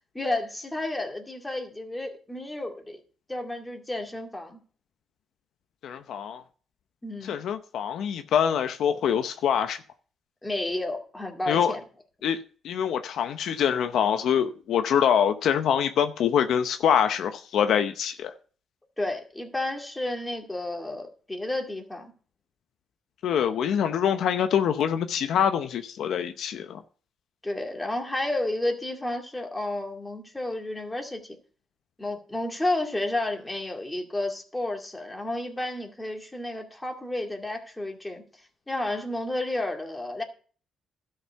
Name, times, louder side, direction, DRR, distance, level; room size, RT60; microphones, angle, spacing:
voice 1, 0.1-3.0 3.3-4.6 7.0-7.4 10.4-11.8 19.0-22.1 27.4-31.4 32.0-38.2 38.7-40.2, left 1 dB, 10° left, 2.2 m, -31 dB
voice 2, 5.8-6.4 7.2-9.8 11.5-11.7 12.2-12.4 12.6-18.3 23.2-26.8, left 8 dB, 75° left, 0.7 m, -25 dB
12.5 x 5.6 x 5.7 m
cardioid pair, 90°, 0 cm